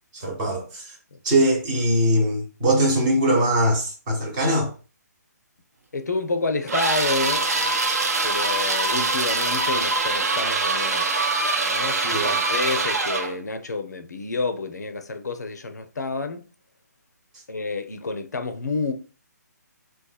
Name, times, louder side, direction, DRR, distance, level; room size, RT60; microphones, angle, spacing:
voice 1, 0.1-0.9 1.2-4.7 12.1-12.4, right 1 dB, 25° right, 0.7 m, -21 dB
voice 2, 5.9-7.8 8.2-11.1 11.7-16.5 17.5-18.9, left 3 dB, 70° left, 0.4 m, -29 dB
sound 1, 6.7-13.4, right 3 dB, 60° right, 0.5 m, -23 dB
3.0 x 2.2 x 2.2 m
figure-of-eight pair, 140°, 10 cm